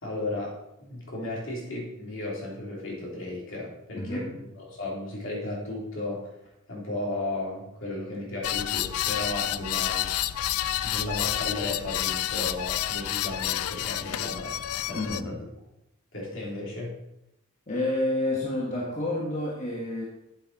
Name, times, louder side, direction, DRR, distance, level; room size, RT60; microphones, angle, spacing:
voice 1, 0.0-6.3 6.7-10.1 10.8-15.4 16.1-17.0, left 2 dB, 60° left, -3 dB, 3.2 m, -35 dB
voice 2, 3.9-4.3 14.9-15.4 17.7-20.1, left 1 dB, 35° left, -4 dB, 1.5 m, -29 dB
sound 1, 8.4-15.2, left 12 dB, 90° left, 0.4 m, -29 dB
8.6 x 8.2 x 4.2 m, 0.86 s
head